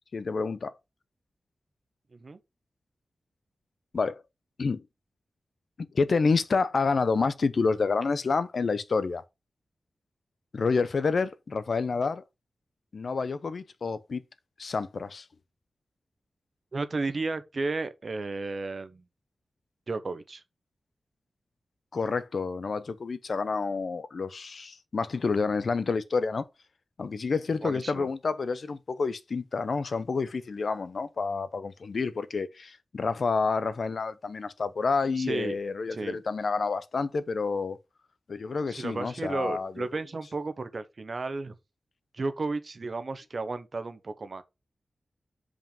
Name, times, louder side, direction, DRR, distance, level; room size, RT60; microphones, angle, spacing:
voice 1, 0.1-0.7 3.9-4.2 4.6-4.8 5.9-9.2 10.5-12.2 12.9-14.2 14.6-15.3 21.9-26.5 27.0-37.8 38.3-39.9, left 4 dB, 60° left, 0.7 m, -28 dB
voice 2, 16.7-19.0 19.9-20.4 27.6-28.1 35.1-35.6 35.9-36.2 38.7-41.5 42.1-44.4, right 3 dB, 50° right, 0.9 m, -33 dB
5.4 x 5.1 x 5.3 m
wide cardioid pair, 105°, 0 cm